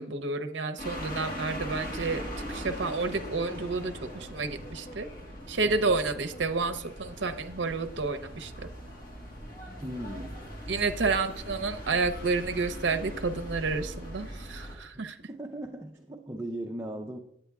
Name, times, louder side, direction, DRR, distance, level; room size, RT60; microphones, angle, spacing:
voice 1, 0.0-2.2 2.5-5.1 5.5-8.5 10.7-15.2, right 3 dB, 60° right, 8 dB, 0.6 m, -30 dB
sound 1, 0.8-14.8, equal, 45° left, 2.1 m, -40 dB
voice 2, 5.7-6.0 9.8-10.4 15.3-17.2, right 1 dB, 15° right, 2 dB, 0.5 m, -38 dB
9.2 x 8.0 x 3.5 m, 0.69 s
head